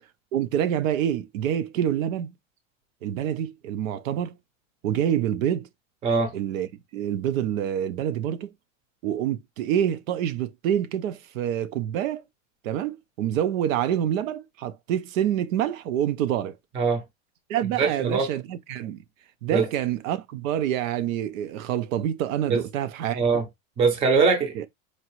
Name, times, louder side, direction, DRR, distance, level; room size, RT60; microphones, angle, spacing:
voice 1, 0.3-2.3 3.0-4.4 4.8-5.7 6.3-8.5 9.0-12.2 12.6-16.6 17.5-19.0 19.4-23.2 24.5-24.7, right 10 dB, 80° right, 0.7 m, -27 dB
voice 2, 6.0-6.3 16.8-17.0 17.8-18.3 19.5-19.7 22.5-22.6 23.1-23.4 23.8-24.5, right 5 dB, 15° right, 0.5 m, -21 dB
4.5 x 2.5 x 3.0 m
supercardioid pair, 160°, 39 cm